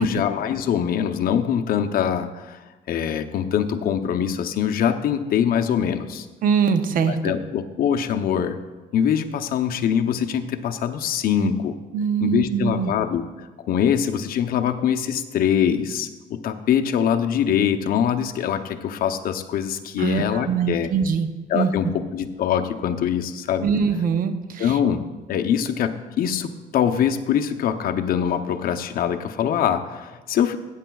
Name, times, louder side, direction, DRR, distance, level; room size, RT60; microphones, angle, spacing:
voice 1, 0.0-2.6 2.9-6.3 7.1-8.6 8.9-11.7 12.2-20.9 21.5-23.7 24.6-25.0 25.3-30.6, left 8 dB, 60° left, 7 dB, 0.7 m, -23 dB
voice 2, 6.4-7.4 11.4-11.5 11.9-12.9 20.0-21.3 21.5-21.7 23.6-24.8, right 6 dB, 55° right, 9 dB, 0.8 m, -22 dB
15.0 x 9.0 x 2.3 m, 1.2 s
cardioid pair, 110°, 17 cm